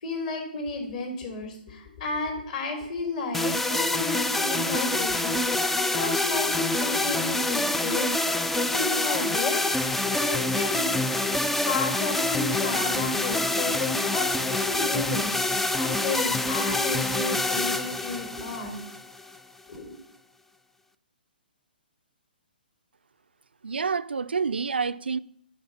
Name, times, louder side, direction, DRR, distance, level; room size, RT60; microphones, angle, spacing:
voice 1, 0.0-10.9 11.7-18.8 19.7-20.0, left 3 dB, 45° left, 3.5 m, -33 dB
sound 1, 3.3-19.4, left 2 dB, 5° left, 0.3 m, -26 dB
voice 2, 23.6-25.2, right 5 dB, 90° right, 0.4 m, -28 dB
10.5 x 5.3 x 5.8 m
hypercardioid pair, 140°, 5 cm